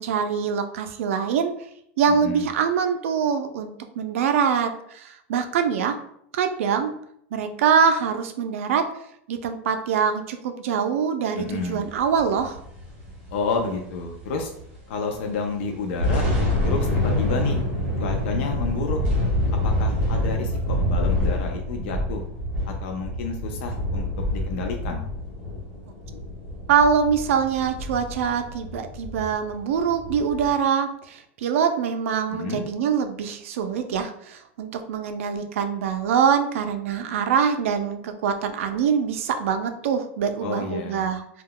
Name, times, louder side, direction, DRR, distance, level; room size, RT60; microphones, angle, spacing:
voice 1, 0.0-1.5 2.0-6.0 6.3-6.9 7.3-8.9 9.3-12.6 26.7-41.4, right 7 dB, 90° right, 7 dB, 0.4 m, -24 dB
voice 2, 2.1-2.5 11.4-11.8 13.3-14.5 14.9-16.2 16.6-17.6 18.0-19.0 19.6-22.3 22.7-24.1 24.3-25.1 32.3-32.7 40.4-41.1, left 4 dB, 60° left, 2 dB, 0.4 m, -30 dB
sound 1, 12.0-14.8 15.1-15.2 15.7-30.5, left 1 dB, 30° right, 1.1 m, -27 dB
2.2 x 2.1 x 3.6 m, 0.71 s
supercardioid pair, 175°, 7 cm